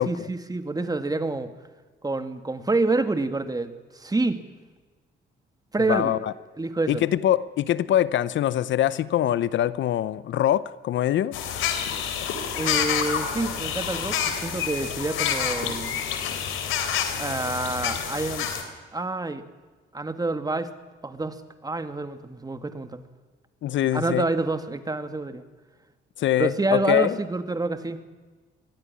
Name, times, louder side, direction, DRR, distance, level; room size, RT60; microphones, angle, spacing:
voice 1, 0.0-1.5 2.0-4.4 5.7-6.2 6.6-7.1 12.6-16.0 17.2-18.5 18.9-19.4 19.9-20.7 21.0-23.0 23.9-25.4 26.4-28.0, right 2 dB, 20° right, 9 dB, 2.0 m, -27 dB
voice 2, 5.9-6.3 6.9-11.4 23.6-24.2 26.2-27.2, left 12 dB, 70° left, 17 dB, 0.8 m, -23 dB
sound 1, 11.3-18.6, left 8 dB, 90° left, 3.1 m, -28 dB
23.0 x 16.5 x 9.9 m, 1.3 s
cardioid pair, 90°, 20 cm